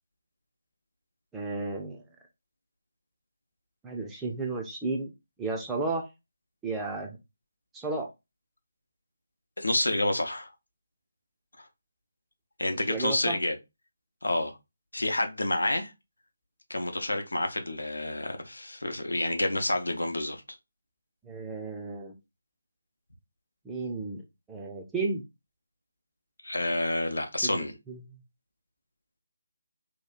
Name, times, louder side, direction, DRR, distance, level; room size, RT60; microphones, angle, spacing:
voice 1, 1.3-2.0 3.8-5.1 5.4-6.1 6.6-7.2 7.7-8.1 12.7-13.4 21.2-22.1 23.6-24.2 24.5-25.2 27.4-28.0, right 3 dB, 5° right, 0.5 m, -33 dB
voice 2, 9.6-10.5 11.6-11.7 12.6-13.6 14.2-14.6 14.9-15.9 16.7-20.6 26.4-27.7, left 1 dB, 70° left, 0.7 m, -29 dB
2.9 x 2.3 x 3.9 m
figure-of-eight pair, 150°, 0 cm